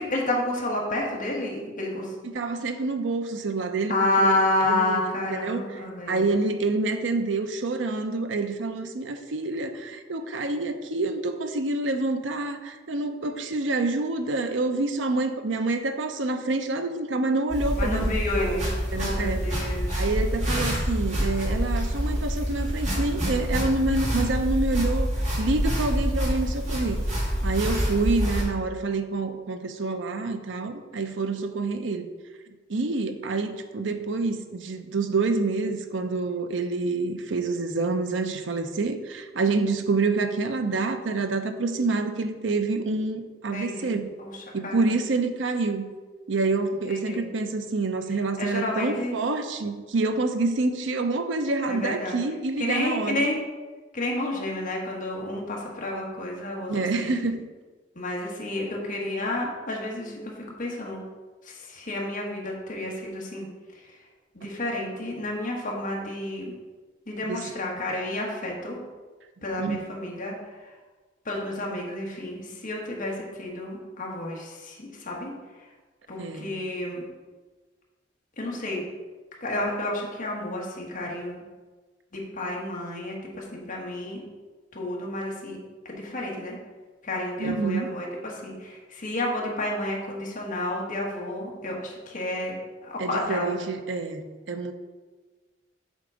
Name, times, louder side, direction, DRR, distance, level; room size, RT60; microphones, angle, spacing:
voice 1, 0.0-2.1 3.9-6.3 17.8-20.0 43.5-44.9 46.9-47.3 48.1-49.2 51.7-52.2 52.6-53.4 53.9-57.1 57.9-61.0 61.4-63.5 63.7-64.0 64.3-66.5 67.1-68.8 69.4-70.7 71.2-75.7 76.1-77.0 78.4-78.8 79.4-81.4 82.1-84.2 84.7-85.6 85.8-86.6 87.0-93.6, left 1 dB, 45° left, -2 dB, 1.4 m, -30 dB
voice 2, 2.3-3.9 4.2-4.3 4.7-5.0 5.4-5.6 6.1-18.1 18.4-18.6 18.9-19.4 20.0-25.1 25.4-27.0 27.4-32.1 32.7-44.0 44.5-45.9 46.3-53.2 56.7-57.4 67.3-67.4 69.6-69.8 76.2-76.5 87.4-87.9 93.0-94.7, right 3 dB, 75° right, 8 dB, 0.6 m, -27 dB
sound 1, 17.5-28.4, equal, 40° right, 2.0 m, -27 dB
7.3 x 3.8 x 5.0 m, 1.3 s
head